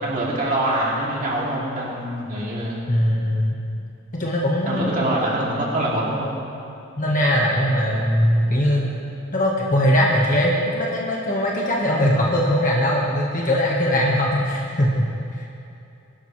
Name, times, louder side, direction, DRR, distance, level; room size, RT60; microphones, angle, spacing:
voice 1, 0.0-2.8 4.7-6.3, right 1 dB, 35° right, -5 dB, 2.8 m, -24 dB
voice 2, 2.9-3.6 4.1-5.1 7.0-9.0 9.3-15.5, equal, 35° left, -3 dB, 1.5 m, -21 dB
23.0 x 11.5 x 3.3 m, 2.8 s
head